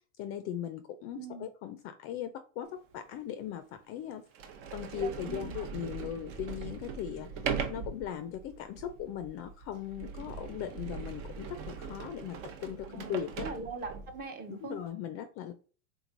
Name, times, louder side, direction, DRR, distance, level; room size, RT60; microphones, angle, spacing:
voice 1, 0.2-4.2 4.7-7.3 7.7-13.5 14.5-15.5, left 9 dB, 35° left, 0.4 m, -39 dB
voice 2, 1.1-1.5 4.9-5.6 6.0-6.1 12.9-14.8, right 4 dB, 25° right, 0.6 m, -42 dB
Sliding door, 2.9-3.0 3.8-3.9 4.3-14.2, right 6 dB, 60° right, 0.8 m, -40 dB
3.6 x 3.0 x 2.5 m
hypercardioid pair, 105°, 41 cm